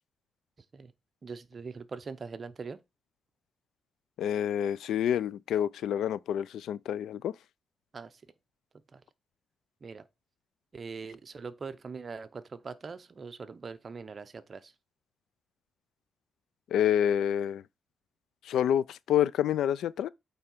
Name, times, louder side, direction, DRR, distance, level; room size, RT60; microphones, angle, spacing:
voice 1, 1.2-2.8 7.9-8.2 8.9-9.0 9.8-10.1 10.7-14.7, right 5 dB, 30° right, 0.6 m, -42 dB
voice 2, 4.2-7.3 16.7-17.6 18.4-20.1, left 10 dB, 85° left, 0.4 m, -28 dB
8.5 x 3.4 x 4.4 m
cardioid pair, 145°, 0 cm